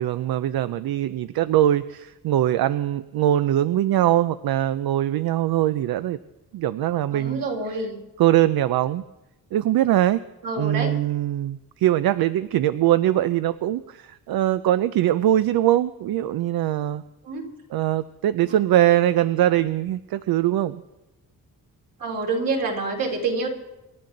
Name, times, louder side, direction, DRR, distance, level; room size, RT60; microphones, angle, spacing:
voice 1, 0.0-6.2 6.5-7.4 7.7-7.8 8.2-9.0 9.5-10.2 10.6-17.0 17.7-20.8, right 12 dB, 85° right, 13 dB, 0.5 m, -22 dB
voice 2, 7.1-8.0 10.4-11.0 17.2-17.5 18.4-18.6 22.0-23.5, right 3 dB, 65° right, 0 dB, 3.4 m, -27 dB
27.0 x 12.0 x 3.9 m, 0.99 s
wide cardioid pair, 160°, 36 cm